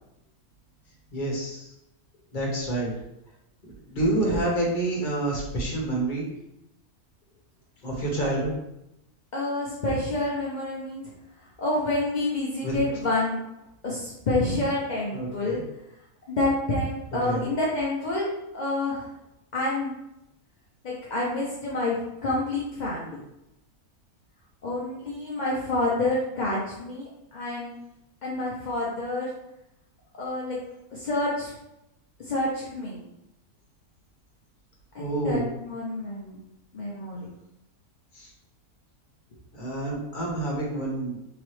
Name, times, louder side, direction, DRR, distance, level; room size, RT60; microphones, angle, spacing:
voice 1, 1.1-1.7 2.3-2.9 3.9-6.3 7.8-8.5 12.6-12.7 15.1-15.6 17.2-17.4 35.0-35.5 38.1-38.3 39.6-41.2, right 2 dB, 35° left, -3 dB, 1.1 m, -28 dB
voice 2, 9.3-11.0 11.6-13.4 13.8-15.6 16.3-19.1 19.5-19.9 20.8-23.2 24.6-27.7 28.2-29.3 30.2-30.6 30.9-31.5 32.3-33.1 34.9-36.4 36.7-37.3, left 2 dB, 55° left, -5 dB, 0.5 m, -28 dB
3.8 x 3.0 x 3.1 m, 0.86 s
omnidirectional pair, 1.6 m